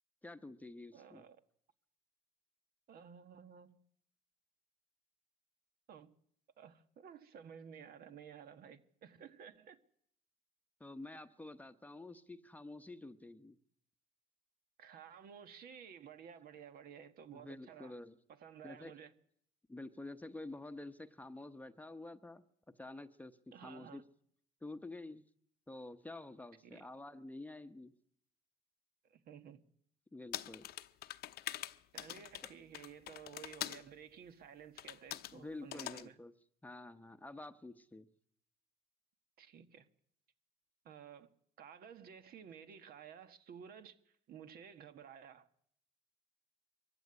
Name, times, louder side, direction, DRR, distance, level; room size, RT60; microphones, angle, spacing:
voice 1, 0.2-1.2 10.8-13.6 17.3-18.2 18.6-18.9 19.7-22.4 22.8-23.4 23.6-24.0 24.6-25.2 25.7-27.9 30.1-30.7 32.4-32.5 35.3-36.3 36.6-38.1, left 2 dB, 10° left, 0.9 m, -49 dB
voice 2, 0.9-1.4 2.9-3.8 5.9-6.1 6.6-9.8 14.8-18.0 18.3-19.1 23.5-24.0 26.6-26.8 29.1-29.6 31.9-36.2 39.4-39.9 40.8-41.3 41.6-45.5, right 7 dB, 65° right, 1.6 m, -54 dB
sound 1, 30.3-33.8 34.8-35.3 35.7-36.0, left 13 dB, 70° left, 0.8 m, -44 dB
23.0 x 15.0 x 9.8 m
cardioid pair, 110°, 17 cm